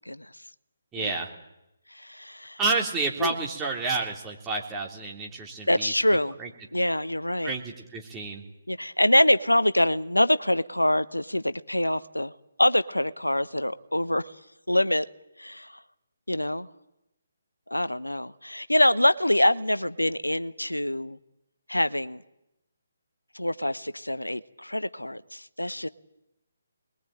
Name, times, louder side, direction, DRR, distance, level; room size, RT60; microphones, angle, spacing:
voice 1, 0.9-1.3 2.6-5.9 6.4-6.5 7.4-8.4, right 3 dB, 10° right, -1 dB, 3.4 m, -30 dB
voice 2, 1.9-2.6 3.2-3.3 5.7-6.4 6.7-7.5 8.7-12.3 12.6-14.3 14.7-15.0 15.4-15.8 16.3-16.7 17.7-21.2 21.7-22.2 23.3-25.9, left 1 dB, 85° left, 14 dB, 0.8 m, -25 dB
25.0 x 21.0 x 9.0 m, 0.89 s
figure-of-eight pair, 140°, 0 cm